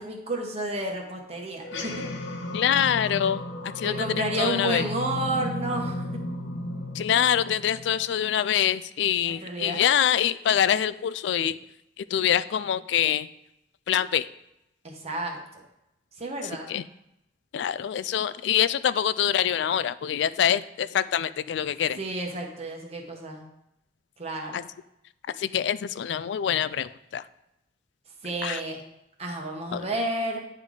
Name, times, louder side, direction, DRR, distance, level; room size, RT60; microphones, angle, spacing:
voice 1, 0.0-1.9 3.8-6.1 9.2-9.8 14.8-15.6 16.2-16.7 22.0-23.5 24.2-24.6 28.2-28.8 29.2-30.4, right 2 dB, 35° right, 0 dB, 1.0 m, -31 dB
sound 1, 1.6-8.3, left 2 dB, 90° left, 0.9 m, -34 dB
voice 2, 2.5-3.4 3.8-4.8 6.9-11.6 12.0-13.3 13.9-14.3 16.7-16.8 17.5-22.0 24.5-24.6 25.4-27.2 28.4-28.6 29.7-29.8, left 9 dB, 70° left, 16 dB, 0.3 m, -25 dB
9.5 x 3.9 x 4.8 m, 0.85 s
head